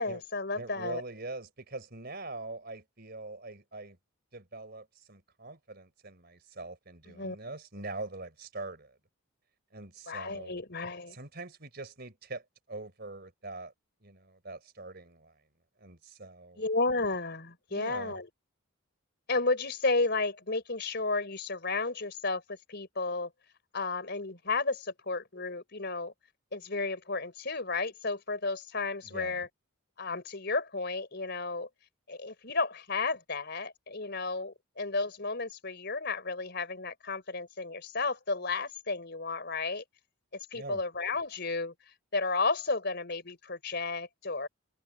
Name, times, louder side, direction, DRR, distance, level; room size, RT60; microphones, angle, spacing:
voice 1, 0.0-1.0 7.2-7.4 10.1-11.1 16.6-18.3 19.3-22.4 22.7-23.3 23.7-26.1 26.5-29.5 30.0-31.7 32.1-39.8 40.5-41.7 42.1-44.5, left 3 dB, 50° left, 4.5 m, -32 dB
voice 2, 0.5-4.0 4.3-9.0 9.7-10.6 11.1-13.7 14.0-15.4 15.8-16.7 17.7-18.2 29.0-29.4 40.5-40.8, right 2 dB, 45° right, 4.2 m, -43 dB
head